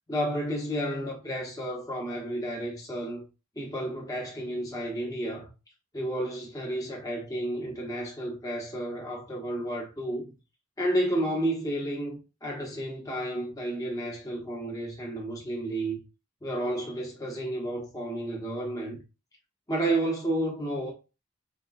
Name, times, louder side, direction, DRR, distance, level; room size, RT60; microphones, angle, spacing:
voice 1, 0.1-3.2 3.6-5.5 5.9-10.3 10.8-16.0 16.4-19.0 19.7-20.9, right 1 dB, 15° left, 1.0 m, -31 dB
4.4 x 2.4 x 2.4 m
head